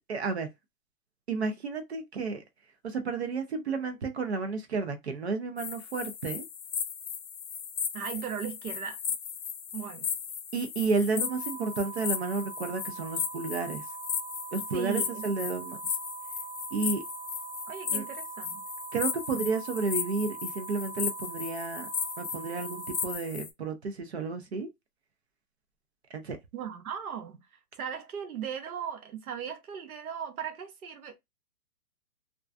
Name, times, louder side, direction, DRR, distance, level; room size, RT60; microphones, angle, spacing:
voice 1, 0.1-0.5 1.3-2.4 2.8-6.4 10.5-13.8 14.5-15.8 16.7-17.0 17.9-18.0 18.9-21.9 22.2-24.7 26.1-26.4, right 4 dB, 50° right, 0.5 m, -31 dB
sound 1, 5.6-23.5, left 7 dB, 90° left, 0.7 m, -36 dB
voice 2, 7.9-9.0 9.7-10.1 14.7-15.9 17.7-18.6 26.5-27.4 27.8-31.2, right 8 dB, 70° right, 0.9 m, -37 dB
sound 2, 11.2-23.2, right 9 dB, 10° right, 0.7 m, -43 dB
2.3 x 2.2 x 2.4 m
hypercardioid pair, 165°, 45 cm